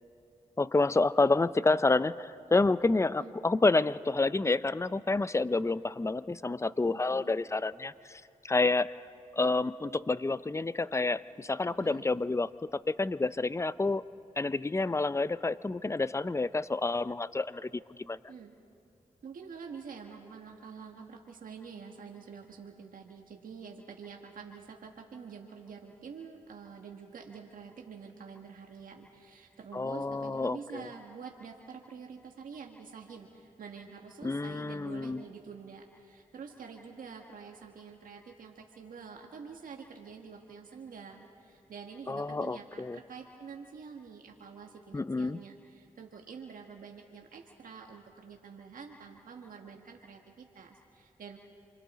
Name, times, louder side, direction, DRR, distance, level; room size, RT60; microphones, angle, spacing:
voice 1, 0.6-8.9 9.3-14.0 14.4-17.8 18.1-18.2 29.7-30.9 34.2-35.2 42.1-43.0 44.9-45.4, left 3 dB, 20° left, 16 dB, 0.6 m, -29 dB
voice 2, 6.9-7.3 11.7-12.1 18.3-18.5 19.2-51.4, right 6 dB, 75° right, 2 dB, 1.4 m, -47 dB
28.0 x 24.0 x 4.2 m, 2.6 s
cardioid pair, 45°, 14 cm